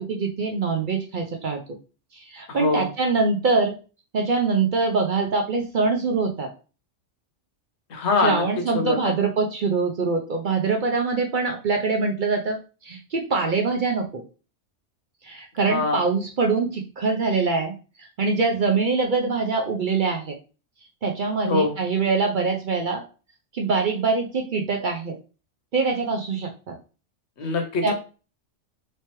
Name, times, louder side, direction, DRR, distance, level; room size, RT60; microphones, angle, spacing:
voice 1, 0.0-1.6 2.1-3.7 4.1-6.5 8.2-12.6 12.8-14.2 15.2-20.3 21.0-23.0 23.5-25.1 25.7-26.7 27.8-27.9, right 4 dB, 55° right, 2 dB, 0.6 m, -24 dB
voice 2, 2.5-2.9 7.9-8.4 8.7-9.0 15.7-16.0 21.4-21.8 27.4-27.9, left 4 dB, 65° left, 4 dB, 1.0 m, -23 dB
3.2 x 3.2 x 2.9 m, 0.35 s
omnidirectional pair, 1.2 m